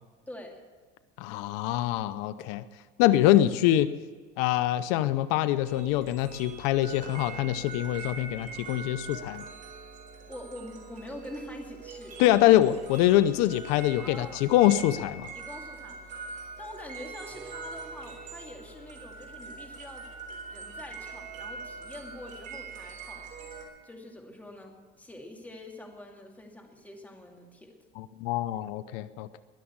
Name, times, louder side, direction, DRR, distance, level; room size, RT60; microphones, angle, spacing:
voice 1, 0.3-0.6 10.3-12.6 14.0-14.4 15.3-20.1 20.5-23.3 23.8-27.8, left 1 dB, 5° left, 1 dB, 2.5 m, -45 dB
voice 2, 1.2-2.6 3.0-3.9 4.4-9.4 12.2-15.3 28.0-29.4, left 14 dB, 85° left, 13 dB, 0.7 m, -24 dB
sound 1, 5.7-23.6, right 4 dB, 40° right, 3.7 m, -43 dB
21.0 x 7.2 x 8.8 m, 1.5 s
cardioid pair, 140°, 21 cm